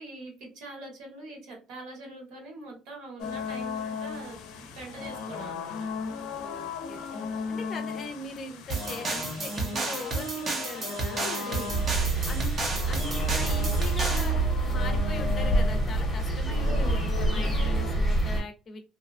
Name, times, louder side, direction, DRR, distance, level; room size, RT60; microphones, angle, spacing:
voice 1, 0.0-4.4 4.7-5.9 11.4-11.7 16.6-17.0, right 2 dB, 80° right, 1 dB, 1.3 m, -42 dB
sound 1, 3.2-17.9, left 4 dB, 80° left, 0.5 m, -37 dB
voice 2, 6.3-7.0 7.5-11.7 12.2-12.5 12.9-14.3 14.6-18.8, left 3 dB, 30° left, 6 dB, 0.5 m, -40 dB
sound 2, 8.7-14.3, right 3 dB, 30° right, 0.6 m, -32 dB
sound 3, 11.7-18.4, right 2 dB, 5° left, 0.8 m, -26 dB
2.7 x 2.2 x 2.4 m, 0.31 s
cardioid pair, 170°, 0 cm